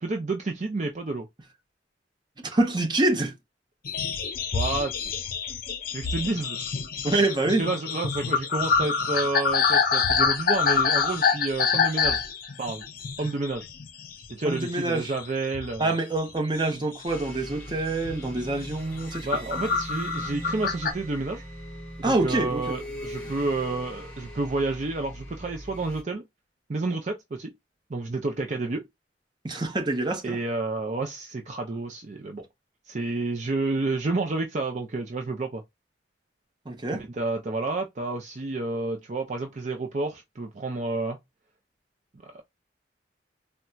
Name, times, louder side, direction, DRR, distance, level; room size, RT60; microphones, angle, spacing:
voice 1, 0.0-1.3 4.5-5.0 5.9-6.6 7.6-12.2 12.6-12.8 13.2-13.7 14.3-16.0 19.2-21.4 22.0-26.2 26.7-27.5 27.9-28.9 30.2-32.4 32.8-35.6 37.0-41.2 42.2-42.4, right 3 dB, 45° right, 0.5 m, -30 dB
voice 2, 2.4-3.3 7.0-7.7 14.4-15.1 15.8-19.3 19.5-19.6 22.0-22.8 29.4-30.4 36.7-37.0, right 2 dB, 25° right, 0.8 m, -26 dB
sound 1, 3.8-14.3 14.6-15.3 15.5-17.0 17.5-17.7 18.0-18.3 18.8-20.9, left 6 dB, 55° left, 0.6 m, -26 dB
sound 2, 17.1-26.0, equal, 10° left, 2.4 m, -40 dB
4.2 x 2.2 x 2.3 m
head